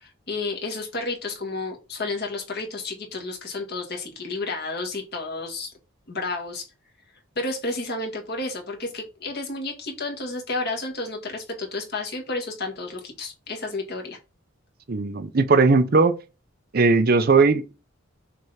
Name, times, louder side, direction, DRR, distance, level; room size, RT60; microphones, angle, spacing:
voice 1, 0.0-5.7 6.1-6.6 7.4-14.2, left 2 dB, 50° left, 1.8 m, -31 dB
voice 2, 14.9-16.2 16.7-17.7, right 4 dB, 45° right, 0.6 m, -18 dB
6.5 x 3.5 x 4.2 m
head